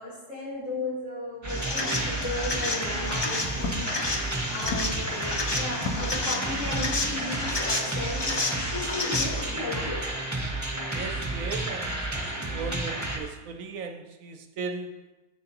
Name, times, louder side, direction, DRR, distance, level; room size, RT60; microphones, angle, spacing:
voice 1, 0.0-4.2 4.5-10.1, left 2 dB, 55° left, -7 dB, 3.7 m, -35 dB
sound 1, 1.4-13.2, right 2 dB, 15° right, 0.9 m, -31 dB
sound 2, 1.5-9.4, left 2 dB, 40° left, 0.3 m, -31 dB
Walk footsteps, 2.8-7.3, left 3 dB, 75° left, 1.4 m, -39 dB
voice 2, 10.9-15.0, right 4 dB, 70° right, 6 dB, 1.0 m, -37 dB
10.5 x 8.1 x 2.9 m, 1.1 s
omnidirectional pair, 1.5 m